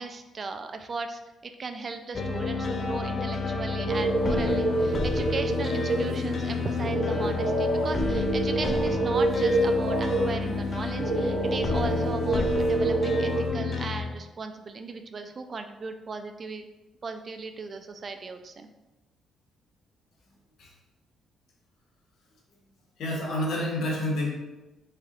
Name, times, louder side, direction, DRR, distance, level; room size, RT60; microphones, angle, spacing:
voice 1, 0.0-16.6 17.0-18.7, right 4 dB, 40° right, 7 dB, 0.3 m, -37 dB
sound 1, 2.1-14.0, left 4 dB, 40° left, 0.4 m, -30 dB
sound 2, 3.9-13.5, right 2 dB, 65° right, 0.8 m, -27 dB
voice 2, 23.0-24.3, left 1 dB, 70° left, -2 dB, 0.9 m, -28 dB
3.6 x 3.3 x 2.4 m, 1.0 s
cardioid pair, 90°, 0 cm